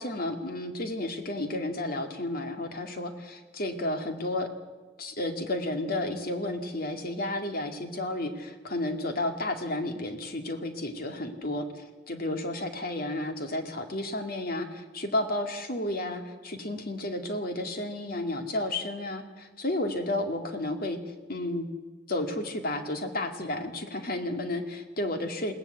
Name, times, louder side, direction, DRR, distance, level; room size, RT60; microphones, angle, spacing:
voice 1, 0.0-4.5 5.0-21.0 21.3-21.7 22.1-25.5, left 1 dB, 50° left, 5 dB, 2.2 m, -32 dB
21.5 x 17.5 x 8.2 m, 1.3 s
head